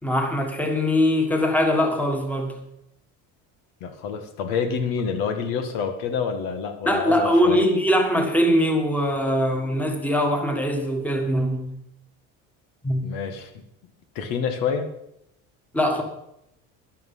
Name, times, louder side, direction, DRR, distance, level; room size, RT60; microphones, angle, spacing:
voice 1, 0.0-2.5 6.8-11.7 12.8-13.0 15.7-16.0, equal, 5° left, 4 dB, 1.5 m, -22 dB
voice 2, 3.8-7.6 13.0-13.5 14.2-14.9, left 6 dB, 90° left, 7 dB, 1.9 m, -27 dB
12.0 x 11.0 x 5.5 m, 0.78 s
cardioid pair, 165°, 34 cm